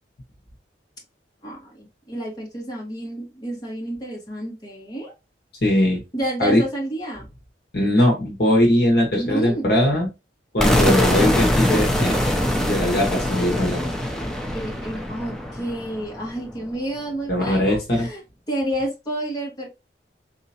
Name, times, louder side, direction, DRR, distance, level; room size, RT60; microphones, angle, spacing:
voice 1, 1.4-5.1 6.1-7.2 9.1-9.7 14.5-18.2 18.5-19.7, right 1 dB, 20° left, -3 dB, 1.4 m, -30 dB
voice 2, 5.6-6.0 6.4-6.6 7.7-10.1 10.5-12.2 12.6-13.9 17.3-18.1, left 1 dB, 60° left, 0 dB, 1.2 m, -20 dB
sound 1, 10.6-16.5, left 1 dB, 5° left, 0.5 m, -22 dB
4.1 x 2.8 x 2.7 m, 0.25 s
head